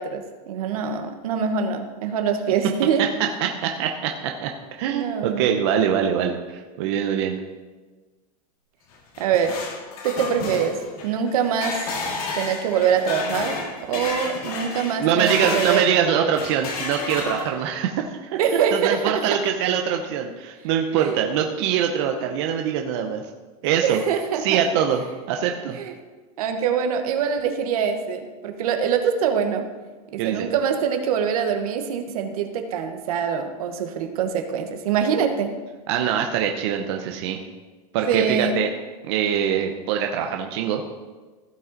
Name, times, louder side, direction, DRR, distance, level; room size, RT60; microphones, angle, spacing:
voice 1, 0.0-3.1 4.9-5.5 9.2-9.6 10.0-11.9 12.3-13.6 13.9-15.9 18.3-19.2 21.0-21.2 23.8-24.6 25.7-25.9 26.4-29.7 30.1-35.6 38.1-38.6, right 7 dB, 70° right, 6 dB, 1.2 m, -24 dB
voice 2, 3.2-4.5 4.8-7.4 15.0-17.9 18.2-18.4 18.7-23.2 23.6-24.0 24.4-25.8 30.2-30.5 35.9-37.4 37.9-38.7 39.0-40.8, right 8 dB, 45° right, 3 dB, 0.7 m, -23 dB
sound 1, 8.9-15.9 16.3-17.7, left 3 dB, 70° left, 2.2 m, -31 dB
15.5 x 5.4 x 4.0 m, 1.3 s
supercardioid pair, 175°, 19 cm